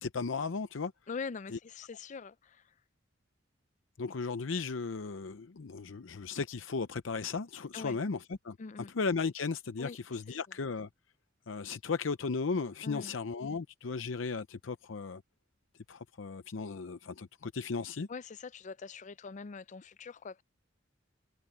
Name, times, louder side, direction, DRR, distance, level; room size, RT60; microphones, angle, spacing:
voice 1, 0.0-0.9 1.5-1.6 4.0-8.6 8.9-10.9 11.5-15.2 15.9-18.1, left 4 dB, 90° left, 0.6 m, -35 dB
voice 2, 1.1-2.6 7.7-8.0 8.6-8.9 9.8-10.0 12.8-13.1 18.1-20.4, left 5 dB, 40° left, 0.4 m, -43 dB
head